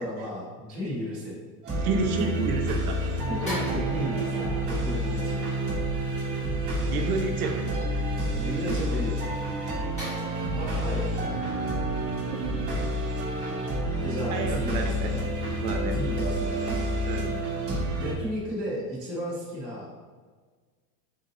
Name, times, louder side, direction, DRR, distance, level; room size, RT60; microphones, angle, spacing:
voice 1, 0.0-1.4 3.3-5.4 8.3-9.3 10.5-11.5 14.0-15.2 15.9-16.7 18.0-19.9, equal, ahead, -12 dB, 0.5 m, -34 dB
sound 1, 1.6-18.1, right 1 dB, 20° right, 0.9 m, -29 dB
voice 2, 1.8-3.0 6.9-7.8 12.2-12.6 14.3-15.1 15.6-16.0 17.0-17.4, right 4 dB, 60° right, 3 dB, 0.7 m, -30 dB
sound 2, 3.5-6.1 10.0-13.2 13.5-13.7, equal, 15° left, 1.0 m, -42 dB
3.8 x 2.6 x 3.9 m, 1.5 s
supercardioid pair, 170°, 48 cm